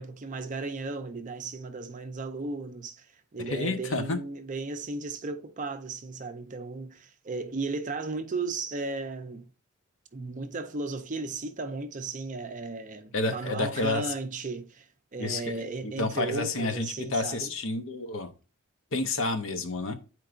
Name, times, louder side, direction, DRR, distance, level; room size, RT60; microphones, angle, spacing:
voice 1, 0.0-3.1 3.3-9.5 10.1-17.5, right 3 dB, 35° right, 0.5 m, -35 dB
voice 2, 3.5-4.2 13.1-14.1 15.2-18.3 18.9-20.0, left 3 dB, 60° left, 0.7 m, -30 dB
8.9 x 4.5 x 2.5 m
head